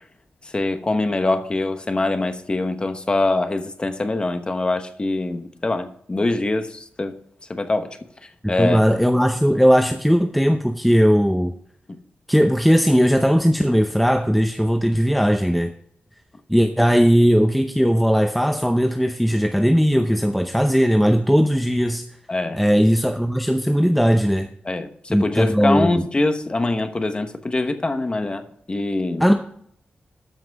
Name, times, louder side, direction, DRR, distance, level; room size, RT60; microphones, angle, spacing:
voice 1, 0.5-7.1 7.5-8.0 8.5-8.8 11.9-12.0 22.3-22.6 24.6-29.2, left 2 dB, 25° left, 8 dB, 1.1 m, -23 dB
voice 2, 8.4-11.5 12.3-15.7 16.5-22.0 22.5-24.5 25.1-26.0 29.2-29.3, equal, ahead, 6 dB, 0.6 m, -18 dB
13.0 x 6.0 x 4.7 m, 0.66 s
wide cardioid pair, 105°, 4 cm